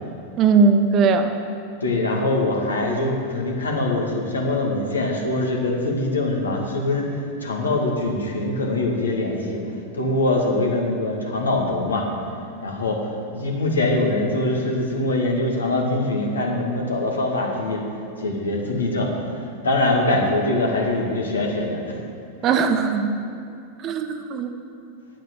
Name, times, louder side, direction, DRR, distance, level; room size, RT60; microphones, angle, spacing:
voice 1, 0.4-1.4 22.4-23.1 23.8-24.5, right 5 dB, 40° right, 7 dB, 1.1 m, -19 dB
voice 2, 1.8-9.6 9.9-12.1 12.6-17.8 18.2-22.0, left 2 dB, 80° left, 0 dB, 2.1 m, -23 dB
9.2 x 8.7 x 8.0 m, 2.5 s
figure-of-eight pair, 90°, 0 cm